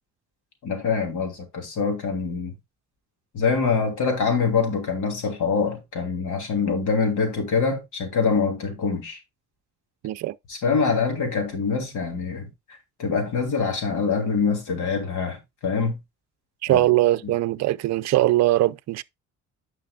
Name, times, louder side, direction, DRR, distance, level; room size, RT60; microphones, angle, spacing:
voice 1, 0.6-2.5 3.3-9.2 10.5-16.0 16.7-16.8 17.2-17.3, left 5 dB, 75° left, 3.2 m, -25 dB
voice 2, 10.0-10.3 16.6-19.0, right 15 dB, 60° right, 0.5 m, -21 dB
10.0 x 5.8 x 2.4 m
cardioid pair, 90°, 30 cm